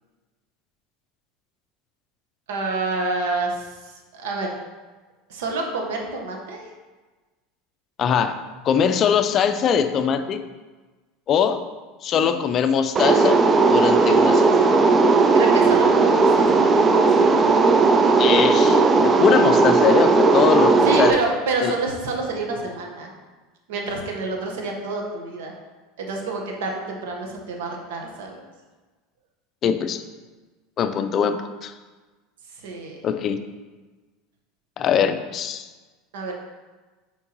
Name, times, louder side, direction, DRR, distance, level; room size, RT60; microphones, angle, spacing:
voice 1, 2.5-4.5 5.3-6.6 15.3-17.4 20.8-23.1 23.7-25.5 26.0-28.4 32.6-33.0 36.1-36.3, right 3 dB, 85° right, 1 dB, 1.2 m, -28 dB
voice 2, 8.0-8.4 8.6-10.4 11.3-11.7 12.0-13.4 13.7-14.6 18.2-21.2 21.6-21.7 29.6-30.0 30.8-31.7 33.0-33.4 34.8-35.7, left 7 dB, 40° left, 10 dB, 0.4 m, -22 dB
sound 1, 13.0-21.1, right 4 dB, 25° right, 0.4 m, -16 dB
7.5 x 4.5 x 3.0 m, 1.3 s
supercardioid pair, 125°, 0 cm